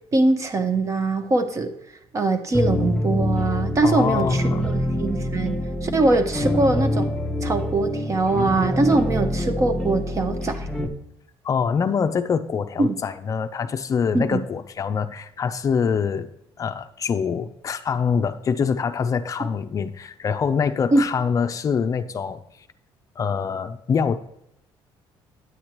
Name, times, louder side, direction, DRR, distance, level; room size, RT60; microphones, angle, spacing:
voice 1, 0.1-1.7 2.1-7.1 7.4-10.7 12.8-13.0 14.1-14.4 20.9-21.0, right 2 dB, 35° right, 9 dB, 0.8 m, -22 dB
sound 1, 2.5-10.9, left 1 dB, ahead, 0.8 m, -26 dB
voice 2, 3.8-4.6 11.4-16.3 16.6-22.4 23.2-24.2, left 6 dB, 35° left, 8 dB, 0.4 m, -24 dB
9.3 x 8.0 x 3.0 m, 0.79 s
cardioid pair, 125°, 10 cm